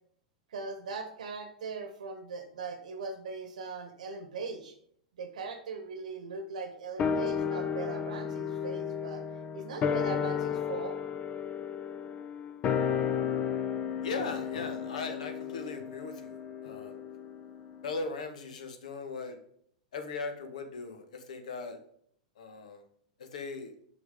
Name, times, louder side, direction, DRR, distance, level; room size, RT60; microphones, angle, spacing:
voice 1, 0.5-4.8 5.2-9.2 9.5-11.0, right 4 dB, 70° right, 7 dB, 1.0 m, -40 dB
sound 1, 7.0-17.6 17.9-18.0, left 7 dB, 30° left, 0.6 m, -33 dB
voice 2, 14.0-17.0 17.8-19.4 19.9-21.8 22.4-22.8 23.2-23.7, left 4 dB, 65° left, 6 dB, 1.3 m, -38 dB
6.3 x 5.6 x 3.6 m, 0.66 s
figure-of-eight pair, 95°, 4 cm